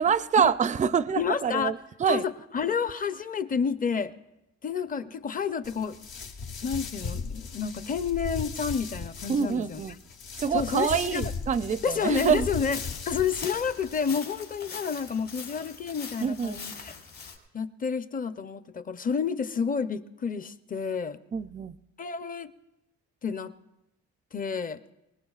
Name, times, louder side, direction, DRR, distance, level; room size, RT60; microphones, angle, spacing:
voice 1, 0.0-2.3 9.3-10.0 10.4-12.5 16.2-16.6 21.3-21.8, right 7 dB, 25° right, 15 dB, 0.4 m, -26 dB
voice 2, 1.2-1.7 2.1-4.1 4.6-6.0 6.6-9.8 10.5-11.3 11.8-12.8 13.1-16.9 17.5-21.2 22.0-22.5 23.2-23.5 24.3-24.8, left 6 dB, 30° left, 13 dB, 0.6 m, -30 dB
sound 1, 5.6-14.0, left 5 dB, 75° left, 1.3 m, -38 dB
sound 2, 12.1-17.4, left 5 dB, 60° left, 3.5 m, -42 dB
23.5 x 19.5 x 2.4 m, 0.90 s
cardioid pair, 90°, 30 cm